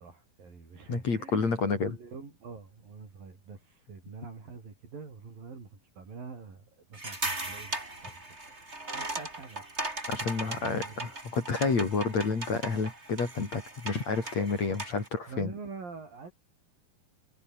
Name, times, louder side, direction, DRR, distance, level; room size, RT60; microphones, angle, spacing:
voice 1, 0.0-8.4 8.9-9.7 10.4-11.1 11.6-11.8 15.3-16.3, right 5 dB, 65° right, 7.3 m, -46 dB
voice 2, 0.9-2.0 10.1-15.5, left 4 dB, 45° left, 5.2 m, -29 dB
sound 1, 6.9-15.1, right 2 dB, 15° right, 4.7 m, -38 dB
omnidirectional pair, 4.4 m